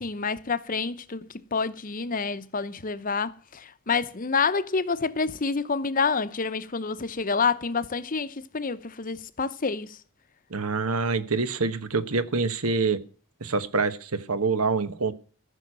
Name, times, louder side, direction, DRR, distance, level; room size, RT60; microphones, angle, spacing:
voice 1, 0.0-10.0, left 5 dB, 40° left, 0.8 m, -28 dB
voice 2, 10.5-13.0 13.4-15.1, right 4 dB, 75° right, 1.2 m, -26 dB
15.0 x 6.5 x 8.8 m
head